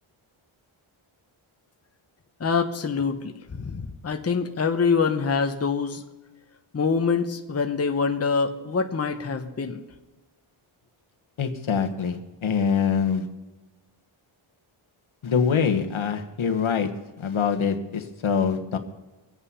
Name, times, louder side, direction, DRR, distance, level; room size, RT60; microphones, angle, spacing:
voice 1, 2.4-6.0 6.7-9.8, left 5 dB, 30° left, 5 dB, 0.9 m, -25 dB
voice 2, 11.4-13.3 15.2-16.9 17.2-18.8, left 6 dB, 70° left, 6 dB, 1.3 m, -24 dB
23.0 x 8.6 x 5.6 m, 1.1 s
wide cardioid pair, 135°, 50 cm